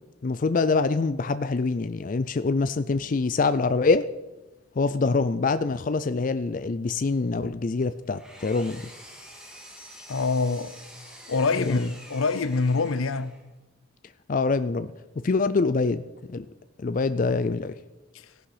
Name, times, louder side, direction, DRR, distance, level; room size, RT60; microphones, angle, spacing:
voice 1, 0.2-4.1 4.8-8.9 11.6-11.9 14.3-16.5 16.8-17.8, left 3 dB, 40° left, 0.4 m, -25 dB
Engine, 7.8-13.5, equal, 5° right, 3.0 m, -47 dB
voice 2, 10.1-10.8 11.3-13.4 18.1-18.3, left 4 dB, 80° left, 0.7 m, -26 dB
15.5 x 11.5 x 4.9 m
head